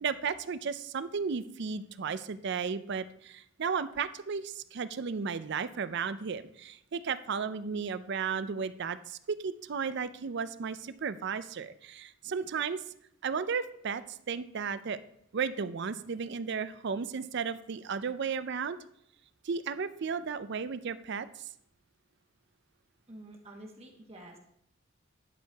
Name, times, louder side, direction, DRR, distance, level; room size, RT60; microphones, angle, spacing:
voice 1, 0.0-12.8 13.2-15.0 15.3-18.8 19.4-21.3, right 6 dB, 55° right, 13 dB, 0.4 m, -34 dB
voice 2, 23.1-24.4, right 1 dB, 30° right, 1 dB, 1.2 m, -48 dB
11.0 x 6.4 x 3.5 m, 0.74 s
head